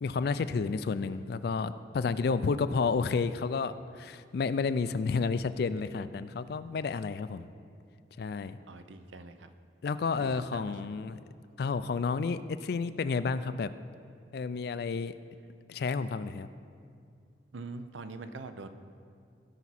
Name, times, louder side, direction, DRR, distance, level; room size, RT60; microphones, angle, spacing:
voice 1, 0.0-7.5 8.2-8.6 9.8-11.2 11.6-13.7 14.3-15.1 15.7-16.5, left 4 dB, 55° left, 13 dB, 0.3 m, -31 dB
voice 2, 2.0-2.5 8.7-9.5 10.2-11.0 17.5-18.7, right 3 dB, 85° right, 10 dB, 0.6 m, -44 dB
16.5 x 5.9 x 4.1 m, 2.3 s
head